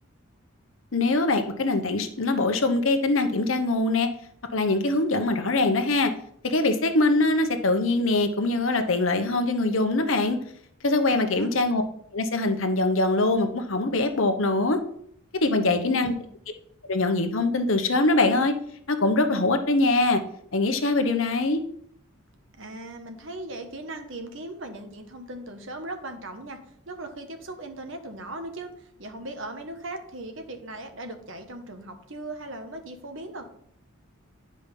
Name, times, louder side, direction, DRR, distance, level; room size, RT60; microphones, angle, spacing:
voice 1, 0.9-4.1 4.5-6.1 6.4-10.4 10.8-11.8 12.1-14.8 15.4-16.1 16.9-18.5 18.9-20.2 20.5-21.6, left 2 dB, 65° left, 7 dB, 1.0 m, -23 dB
voice 2, 11.1-11.5 15.6-16.3 22.6-26.6 26.9-33.4, right 1 dB, 60° right, 6 dB, 1.3 m, -38 dB
9.9 x 5.2 x 5.3 m, 0.68 s
head